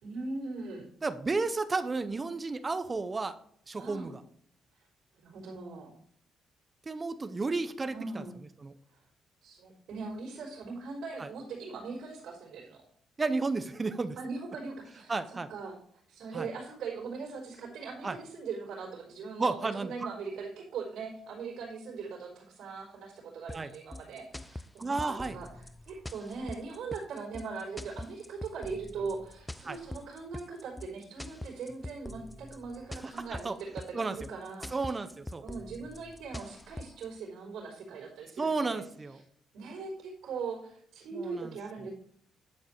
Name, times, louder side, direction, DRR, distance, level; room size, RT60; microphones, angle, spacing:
voice 1, 0.0-0.9 3.8-4.1 5.1-5.9 7.9-8.3 9.4-12.8 14.2-15.8 16.1-34.9 35.4-38.8 39.5-41.9, right 4 dB, 80° right, -4 dB, 3.8 m, -40 dB
voice 2, 1.0-3.4 3.7-4.2 6.9-8.2 8.6-8.7 11.2-11.3 13.2-14.2 15.1-15.5 16.3-16.5 18.0-18.2 19.4-19.9 23.5-23.7 24.8-25.4 29.6-29.8 33.2-33.6 33.9-34.2 34.7-35.4 38.4-39.2 41.1-41.5, right 3 dB, 30° right, 11 dB, 0.7 m, -32 dB
sound 1, 23.5-37.1, left 1 dB, 10° left, 0.4 m, -44 dB
10.5 x 5.3 x 4.5 m, 0.63 s
cardioid pair, 90°, 0 cm